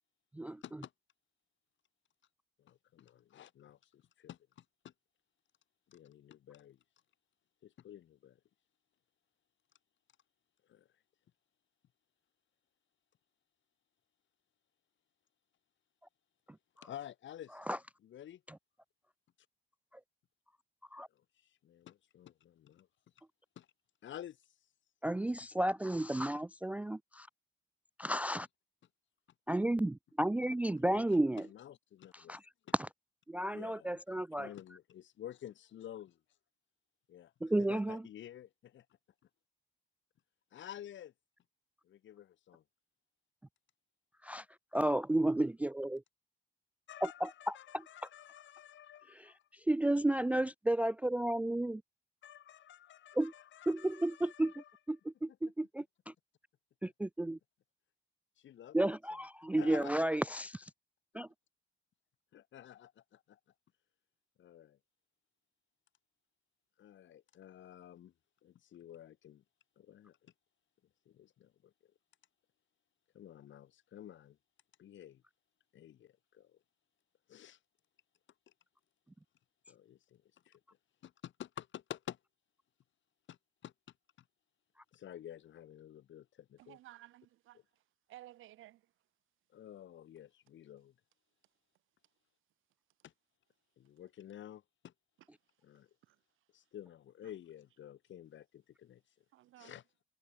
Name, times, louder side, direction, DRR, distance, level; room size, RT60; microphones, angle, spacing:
voice 1, 2.6-4.9 5.9-6.8 7.6-8.4 10.7-10.9 16.8-17.6 18.0-18.4 21.6-22.9 23.6-23.7 24.0-24.4 30.7-31.1 31.3-32.4 32.7-32.8 33.5-36.2 37.1-37.3 37.6-38.9 40.5-41.1 41.8-42.6 46.9-49.4 52.2-54.7 58.4-59.0 59.5-59.9 62.3-63.4 64.4-64.8 66.8-68.1 68.4-69.4 69.8-70.3 71.1-71.7 73.1-74.4 74.8-75.2 75.7-76.6 77.3-77.6 79.7-80.6 81.0-82.2 83.3-83.4 83.6-83.7 84.9-86.8 89.5-90.9 93.0-93.1 93.8-94.9 95.6-95.9 96.5-99.0 99.6-99.8, left 11 dB, 70° left, 7.2 m, -51 dB
voice 2, 25.0-27.3 28.0-28.5 29.5-31.5 32.1-32.4 32.8-32.9 33.3-34.5 37.4-38.0 44.2-44.4 44.7-46.0 47.0-47.8 49.1-49.3 49.7-51.8 53.2-53.3 53.7-54.5 54.9-56.1 56.8-57.4 58.7-60.7 61.1-61.3, right 1 dB, 5° right, 0.3 m, -32 dB
voice 3, 86.6-87.6 88.1-88.8 96.1-96.2 99.3-99.7, right 15 dB, 85° right, 1.7 m, -55 dB
cardioid pair, 90°, 20 cm